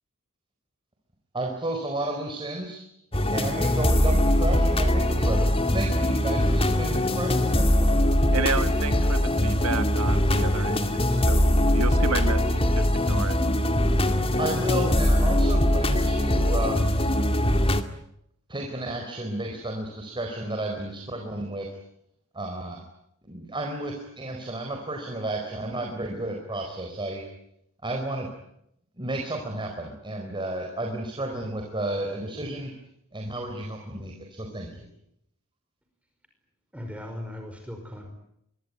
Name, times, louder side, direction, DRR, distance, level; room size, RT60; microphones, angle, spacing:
voice 1, 1.3-2.8 3.3-7.9 14.4-16.9 18.5-21.7 22.3-22.8 23.3-27.2 27.8-28.3 29.0-32.7 33.1-34.9, right 2 dB, 20° right, 2 dB, 4.4 m, -32 dB
sound 1, 3.1-17.8, left 1 dB, 25° left, 2.2 m, -22 dB
voice 2, 8.3-13.4, right 4 dB, 75° right, 9 dB, 1.5 m, -32 dB
voice 3, 36.7-38.1, left 1 dB, 5° right, 3 dB, 5.2 m, -38 dB
26.0 x 22.5 x 9.5 m, 0.78 s
head